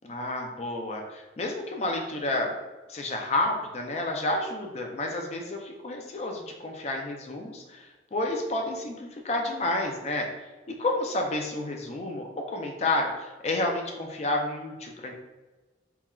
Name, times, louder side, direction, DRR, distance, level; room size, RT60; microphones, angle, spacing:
voice 1, 0.0-2.5 2.9-10.3 10.7-15.1, left 2 dB, 35° left, 2 dB, 0.3 m, -30 dB
3.0 x 2.3 x 2.2 m, 1.2 s
head